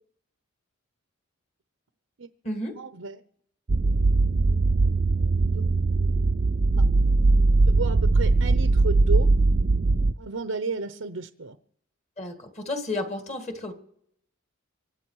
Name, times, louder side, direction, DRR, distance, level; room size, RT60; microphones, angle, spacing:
voice 1, 2.8-3.2 7.7-9.3 10.2-11.6, right 3 dB, 75° right, 10 dB, 0.8 m, -32 dB
sound 1, 3.7-10.1, right 3 dB, 40° right, 0.5 m, -20 dB
voice 2, 12.2-13.7, left 2 dB, 30° left, 6 dB, 1.8 m, -32 dB
25.0 x 9.1 x 4.7 m, 0.70 s
head